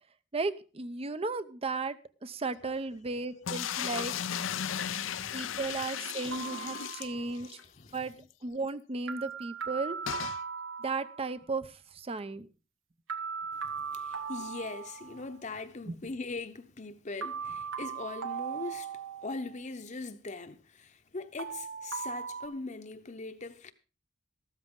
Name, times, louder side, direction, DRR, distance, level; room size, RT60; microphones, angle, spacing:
voice 1, 0.3-4.2 5.3-7.5 7.9-8.1 8.4-10.0 10.8-12.5 15.9-16.0, right 3 dB, 30° right, 0.6 m, -35 dB
voice 2, 2.6-3.8 4.1-5.8 6.2-6.4 7.0-8.3 13.5-23.7, left 3 dB, 40° left, 0.9 m, -42 dB
sound 1, 3.5-7.6 8.0-8.1 8.3-8.4 10.1-10.4, left 9 dB, 80° left, 0.6 m, -35 dB
sound 2, 6.3-7.4 9.1-11.4 13.1-15.4 17.2-19.5 21.4-22.5, right 6 dB, 85° right, 1.2 m, -38 dB
14.0 x 13.0 x 3.8 m
head